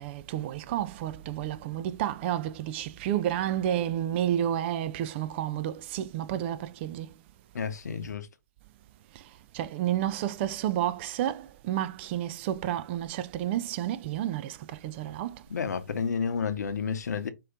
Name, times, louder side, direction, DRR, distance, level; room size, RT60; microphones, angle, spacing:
voice 1, 0.0-7.1 9.5-15.4, right 11 dB, 40° right, 0.4 m, -30 dB
voice 2, 7.5-8.3 15.5-17.3, left 6 dB, 70° left, 0.8 m, -30 dB
4.8 x 3.0 x 3.4 m
figure-of-eight pair, 120°, 9 cm